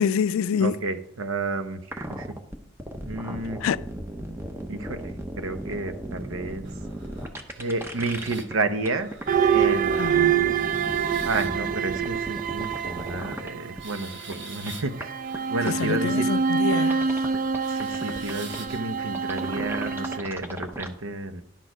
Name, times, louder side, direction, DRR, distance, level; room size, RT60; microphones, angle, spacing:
voice 1, 0.0-0.7 3.6-3.8 10.0-10.5 15.8-17.1, left 7 dB, 80° left, 0.3 m, -26 dB
voice 2, 0.6-2.3 3.0-3.6 4.7-6.7 7.6-9.1 9.5-10.0 11.2-15.2 15.5-16.3 17.7-21.4, right 3 dB, 85° right, 0.8 m, -31 dB
sound 1, 1.8-8.5 8.8-13.5 13.8-13.9 14.3-14.4 14.7-14.8 15.0-15.1 15.3-15.4 15.7-15.8 16.1-16.2 16.7-18.6 19.1-20.9, right 1 dB, 10° right, 0.7 m, -36 dB
sound 2, 6.6-19.5, right 3 dB, 60° right, 1.2 m, -47 dB
sound 3, 9.3-14.0 14.9-20.2, right 6 dB, 40° right, 0.3 m, -26 dB
10.5 x 6.3 x 5.0 m
head